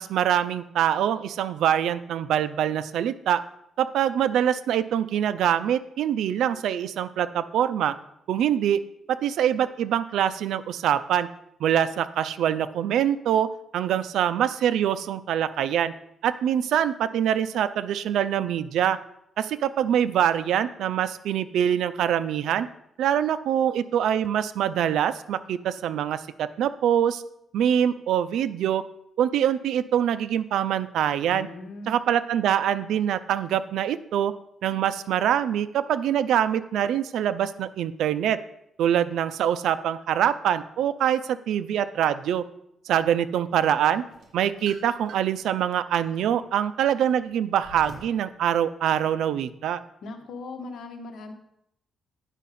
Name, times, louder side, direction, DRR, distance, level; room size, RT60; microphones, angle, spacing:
voice 1, 0.0-3.4 3.8-7.9 8.3-8.8 9.1-11.3 11.6-13.5 13.7-15.9 16.2-19.0 19.4-22.7 23.0-27.2 27.5-28.8 29.2-31.5 31.9-34.3 34.6-38.4 38.8-42.4 42.9-44.0 44.3-49.8, right 10 dB, 85° right, 14 dB, 0.4 m, -24 dB
voice 2, 31.3-32.0 50.0-51.3, left 3 dB, 70° left, 4 dB, 1.3 m, -39 dB
sound 1, 44.1-45.4 46.0-48.2, right 3 dB, 70° right, 2.8 m, -47 dB
10.0 x 5.6 x 4.2 m, 0.78 s
cardioid pair, 115°, 0 cm